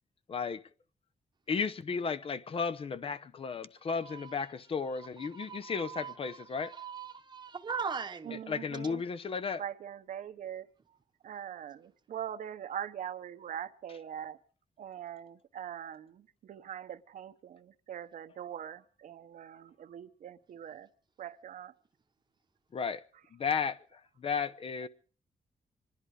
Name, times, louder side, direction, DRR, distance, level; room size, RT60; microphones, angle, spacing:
voice 1, 0.3-0.6 1.5-6.7 8.5-9.6 22.7-23.0 23.3-24.9, left 5 dB, 45° left, 0.8 m, -34 dB
voice 2, 4.0-4.5 5.2-8.4, right 6 dB, 35° right, 1.0 m, -40 dB
voice 3, 8.2-9.0 9.6-11.0 11.2-14.4 14.8-20.9 21.2-21.7, right 9 dB, 80° right, 1.0 m, -42 dB
26.0 x 11.0 x 4.9 m
cardioid pair, 105°, 13 cm